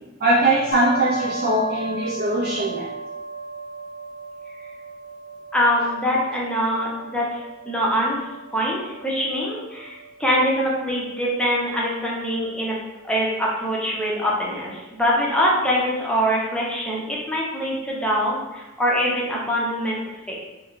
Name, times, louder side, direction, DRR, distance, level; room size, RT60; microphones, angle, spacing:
voice 1, 0.2-2.9, right 1 dB, 50° right, -5 dB, 0.4 m, -21 dB
sound 1, 0.7-14.4, right 2 dB, 45° left, 0.6 m, -36 dB
voice 2, 5.5-8.2 8.5-12.8 13.0-20.0 20.3-20.4, equal, 5° left, -4 dB, 0.6 m, -23 dB
3.6 x 2.1 x 3.0 m, 1.1 s
head